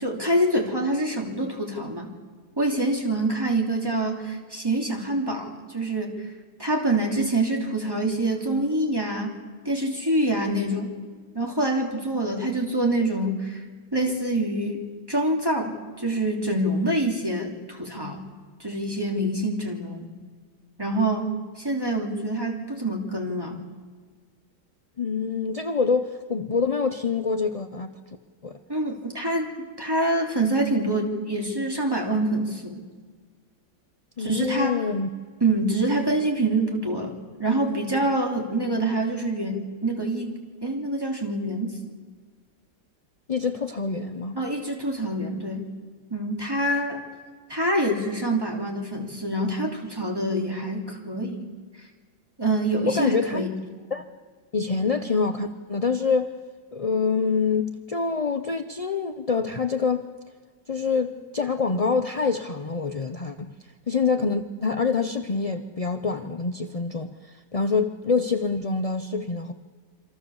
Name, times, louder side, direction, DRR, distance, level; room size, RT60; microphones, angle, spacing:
voice 1, 0.0-2.1 2.6-6.2 6.6-9.3 9.6-10.9 11.3-13.6 13.9-14.8 15.1-18.2 18.6-20.1 20.8-23.6 28.7-32.8 34.2-34.8 35.4-40.3 40.6-41.8 44.3-45.7 46.1-47.0 47.5-51.5 52.4-53.6, right 1 dB, 15° right, 1 dB, 3.1 m, -26 dB
voice 2, 25.0-27.9 28.4-28.6 34.2-35.1 43.3-44.4 52.8-53.5 53.9-54.0 54.5-56.3 56.7-60.0 60.7-63.5 63.9-69.5, left 4 dB, 40° left, 7 dB, 0.5 m, -26 dB
27.0 x 25.5 x 7.2 m, 1.5 s
omnidirectional pair, 1.8 m